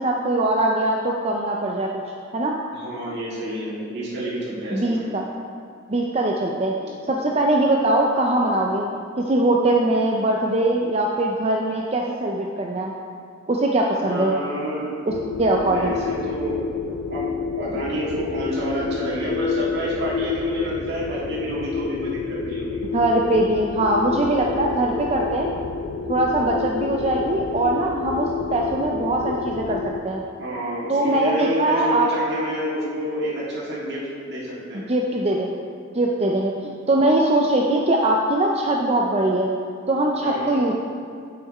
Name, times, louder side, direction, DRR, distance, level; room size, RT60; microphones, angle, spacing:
voice 1, 0.0-2.0 2.3-2.6 4.7-5.2 5.9-8.9 9.2-12.9 13.5-14.3 15.1-15.2 15.4-15.9 22.9-25.5 26.1-29.8 30.0-30.2 30.9-32.1 34.9-35.5 35.9-39.5 39.9-40.7, right 1 dB, 30° right, 0 dB, 0.5 m, -21 dB
voice 2, 2.7-5.1 14.0-14.9 15.6-16.6 17.1-17.3 17.6-22.8 30.4-34.8 40.2-40.6, equal, 60° right, -8 dB, 1.9 m, -29 dB
sound 1, 15.1-30.0, left 5 dB, 90° left, 0.5 m, -29 dB
8.6 x 5.8 x 4.2 m, 2.3 s
head